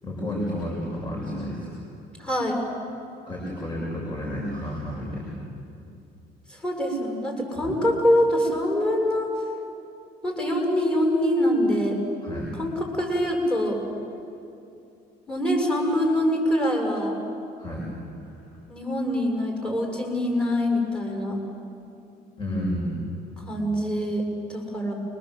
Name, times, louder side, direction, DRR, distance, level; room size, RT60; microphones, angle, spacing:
voice 1, 0.0-1.7 3.3-5.3 7.6-7.8 12.2-12.5 17.6-17.9 18.2-18.3 22.4-23.0, equal, 30° left, -3 dB, 7.2 m, -31 dB
voice 2, 2.2-2.6 6.5-9.3 10.2-12.0 12.6-13.8 15.3-17.2 18.7-21.4 23.4-24.9, equal, 5° left, 0 dB, 7.3 m, -24 dB
29.5 x 24.5 x 8.0 m, 2.7 s
cardioid pair, 110°, 17 cm